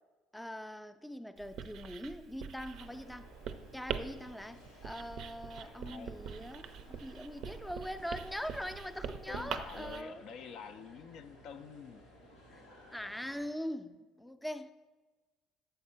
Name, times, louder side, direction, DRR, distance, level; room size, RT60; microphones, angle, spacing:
voice 1, 0.3-3.3 3.7-6.7 7.0-10.2 12.5-12.6 12.9-14.7, equal, 5° left, 9 dB, 0.4 m, -42 dB
Writing, 1.4-10.0, right 7 dB, 65° right, 0.4 m, -44 dB
sound 1, 2.7-13.5, equal, 90° left, 1.6 m, -57 dB
voice 2, 5.6-6.1 9.3-12.1, left 6 dB, 65° left, 9 dB, 0.4 m, -48 dB
6.7 x 4.1 x 5.5 m, 1.3 s
hypercardioid pair, 65°, 0 cm